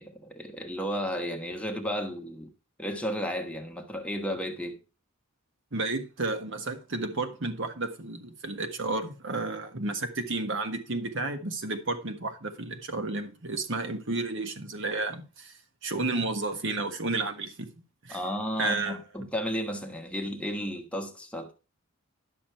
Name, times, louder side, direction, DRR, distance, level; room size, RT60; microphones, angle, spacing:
voice 1, 0.0-2.5 2.8-4.8 18.1-21.5, equal, 5° left, 1.2 m, -33 dB
voice 2, 5.7-15.5 15.8-17.7 18.0-18.2 18.6-19.0, right 2 dB, 60° right, 1.5 m, -32 dB
11.0 x 6.2 x 4.4 m
head